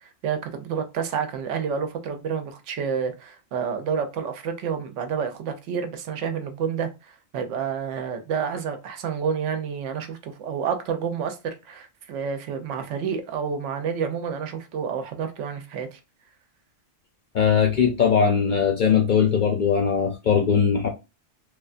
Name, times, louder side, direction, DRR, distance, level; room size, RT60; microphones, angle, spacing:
voice 1, 0.0-16.0, right 7 dB, 80° right, 0.9 m, -29 dB
voice 2, 17.3-20.9, left 7 dB, 60° left, 0.5 m, -20 dB
3.1 x 2.2 x 2.5 m
omnidirectional pair, 1.3 m